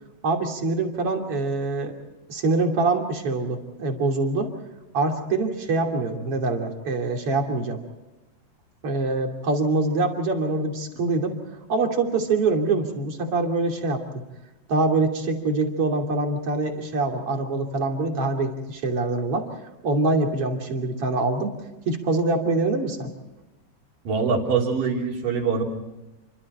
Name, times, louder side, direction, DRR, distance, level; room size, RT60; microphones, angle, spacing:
voice 1, 0.2-1.9 2.3-4.5 4.9-7.8 8.8-14.2 14.7-19.5 19.8-21.6 21.9-23.1, right 3 dB, 35° right, 2 dB, 3.4 m, -24 dB
voice 2, 24.0-25.6, right 5 dB, 55° right, 1 dB, 5.0 m, -23 dB
29.0 x 24.5 x 4.4 m, 1.1 s
omnidirectional pair, 4.9 m